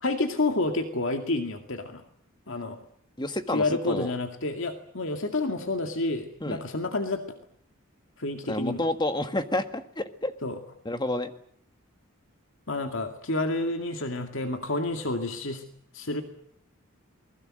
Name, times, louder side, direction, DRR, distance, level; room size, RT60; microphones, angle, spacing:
voice 1, 0.0-2.0 2.5-2.8 3.5-7.4 8.2-8.8 10.4-10.6 12.7-15.6 15.9-16.2, left 2 dB, 65° left, 5 dB, 2.3 m, -29 dB
voice 2, 3.2-4.1 6.4-6.6 8.5-10.3 10.9-11.3, left 1 dB, 20° left, 8 dB, 1.6 m, -29 dB
28.0 x 21.0 x 7.7 m, 0.64 s
head